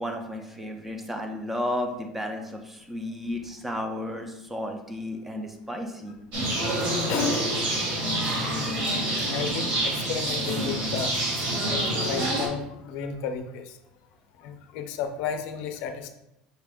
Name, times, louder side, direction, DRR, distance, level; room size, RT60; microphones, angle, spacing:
voice 1, 0.0-6.2, left 1 dB, 5° right, 4 dB, 0.4 m, -33 dB
sound 1, 6.3-12.5, right 1 dB, 50° right, 1.3 m, -27 dB
voice 2, 7.1-7.5 8.5-9.0 9.3-11.3 11.7-13.8 14.4-16.1, left 7 dB, 55° left, 7 dB, 0.5 m, -33 dB
5.4 x 2.4 x 3.4 m, 0.88 s
cardioid pair, 175°, 3 cm